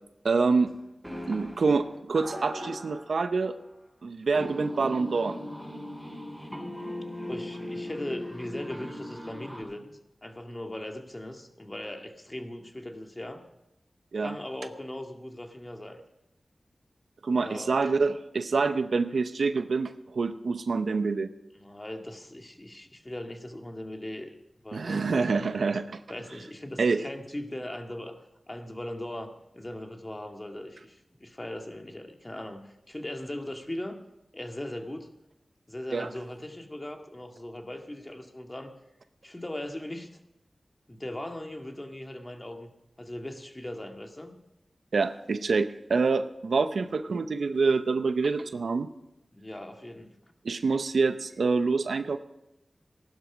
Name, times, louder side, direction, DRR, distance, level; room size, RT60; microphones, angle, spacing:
voice 1, 0.2-0.7 1.3-3.6 4.0-5.4 14.1-14.4 17.2-21.3 24.7-26.0 26.8-27.0 35.9-36.1 44.9-48.9 50.4-52.2, right 4 dB, 85° right, 10 dB, 0.7 m, -26 dB
sound 1, 0.6-0.7 1.0-3.6 4.3-9.6, left 1 dB, ahead, 7.1 m, -39 dB
voice 2, 7.3-9.9 10.2-13.4 14.1-16.0 17.3-17.8 21.5-24.3 24.6-25.2 26.1-28.2 28.5-34.0 34.3-35.1 35.7-38.7 39.2-40.1 40.9-42.7 43.0-44.3 49.3-50.1, left 1 dB, 25° left, 3 dB, 2.1 m, -39 dB
15.5 x 12.0 x 5.1 m, 0.89 s
cardioid pair, 45°, 0 cm